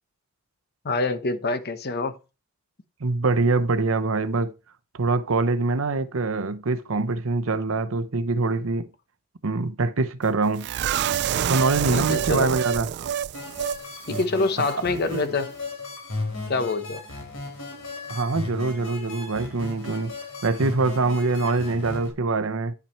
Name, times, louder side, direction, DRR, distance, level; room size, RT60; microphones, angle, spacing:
voice 1, 0.8-2.2 11.9-12.6 14.1-15.5 16.5-17.0, left 3 dB, 50° left, 1.0 m, -26 dB
voice 2, 3.0-4.5 5.0-8.9 9.4-10.7 11.4-12.9 15.1-15.2 18.1-20.2 20.4-22.7, right 3 dB, 75° right, 0.8 m, -24 dB
sound 1, 10.6-13.8 14.1-14.2 14.6-14.7, right 9 dB, 55° right, 0.4 m, -27 dB
sound 2, 13.3-22.1, left 2 dB, 70° left, 4.1 m, -36 dB
10.0 x 5.9 x 4.4 m
head